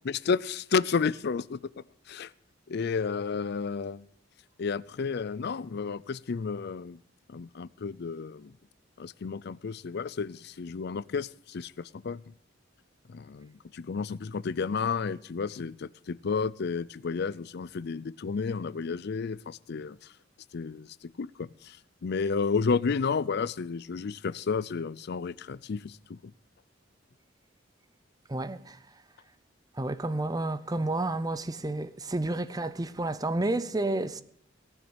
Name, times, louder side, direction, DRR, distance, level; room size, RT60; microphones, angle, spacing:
voice 1, 0.0-1.6 2.1-2.3 2.7-4.0 4.6-7.0 7.3-8.5 9.0-12.2 13.1-20.0 20.5-21.8 22.0-26.3, left 5 dB, 60° left, 0.5 m, -31 dB
voice 2, 28.3-28.8 29.8-34.2, right 2 dB, 20° right, 0.6 m, -30 dB
18.0 x 7.2 x 8.0 m
head